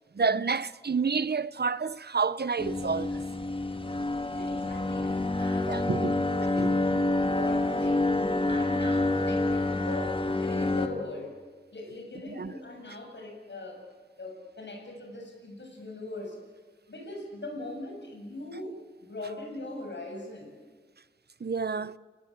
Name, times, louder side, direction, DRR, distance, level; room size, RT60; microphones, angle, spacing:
voice 1, 0.2-3.2 5.7-6.2 6.6-6.7 12.4-12.5 21.4-22.0, right 5 dB, 55° right, 0.7 m, -29 dB
sound 1, 2.6-10.9, left 2 dB, 25° left, 2.1 m, -27 dB
voice 2, 4.3-11.4 11.7-13.9 14.2-16.4 16.9-18.8 19.1-20.6, left 2 dB, 65° left, 7.6 m, -40 dB
29.0 x 19.0 x 8.8 m
wide cardioid pair, 55°, 20 cm